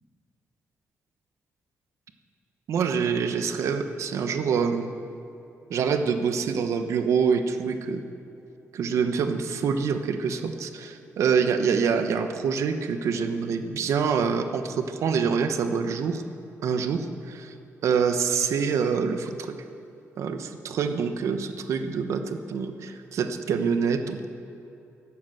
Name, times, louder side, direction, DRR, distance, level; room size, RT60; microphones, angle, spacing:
voice 1, 2.7-4.9 5.7-8.0 8.7-16.2 16.6-17.5 17.8-19.6 20.2-24.3, right 6 dB, 70° right, 8 dB, 1.0 m, -26 dB
12.0 x 11.5 x 7.9 m, 2.8 s
wide cardioid pair, 170°, 5 cm